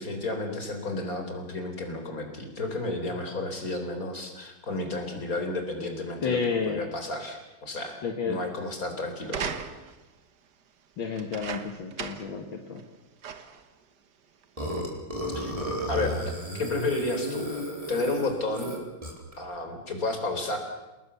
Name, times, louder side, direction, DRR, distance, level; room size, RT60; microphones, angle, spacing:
voice 1, 0.0-8.0 8.2-9.6 15.3-15.5 15.9-16.2 16.5-17.5 17.9-18.7 19.4-20.6, left 2 dB, 45° left, 5 dB, 4.4 m, -32 dB
voice 2, 6.2-6.8 8.0-8.4 11.0-12.8, left 5 dB, 70° left, 4 dB, 2.5 m, -30 dB
sound 1, 9.2-10.1 11.1-12.4 12.8-12.9 13.2-13.7 14.4-14.5, right 6 dB, 55° right, 1.9 m, -36 dB
Burping eructation, 14.6-19.3, equal, 15° right, 4.3 m, -33 dB
29.0 x 20.0 x 7.0 m, 1.0 s
omnidirectional pair, 2.2 m